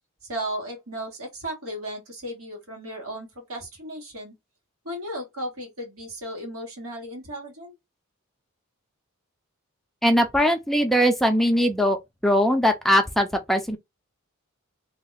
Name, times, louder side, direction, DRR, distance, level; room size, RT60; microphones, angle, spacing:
voice 1, 0.2-4.3 4.8-7.7, right 1 dB, 90° right, 1.6 m, -35 dB
voice 2, 10.0-12.0 12.2-13.8, equal, ahead, 0.4 m, -20 dB
2.8 x 2.2 x 4.0 m
head